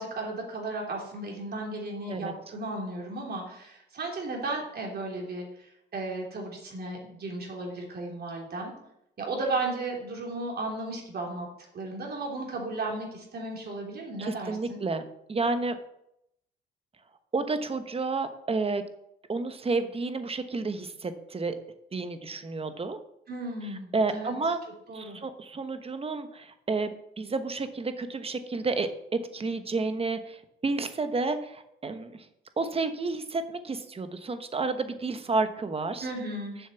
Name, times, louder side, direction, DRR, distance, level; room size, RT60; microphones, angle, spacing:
voice 1, 0.0-8.7 9.2-11.5 11.7-14.8 23.3-24.3 24.9-25.2 36.0-36.6, right 2 dB, 55° right, -1 dB, 3.1 m, -35 dB
voice 2, 14.2-15.8 17.3-18.8 19.3-21.6 21.9-23.0 23.9-24.6 24.9-32.2 32.6-36.1, right 3 dB, 30° right, 9 dB, 1.1 m, -31 dB
7.4 x 6.4 x 7.0 m, 0.79 s
cardioid pair, 90°, 20 cm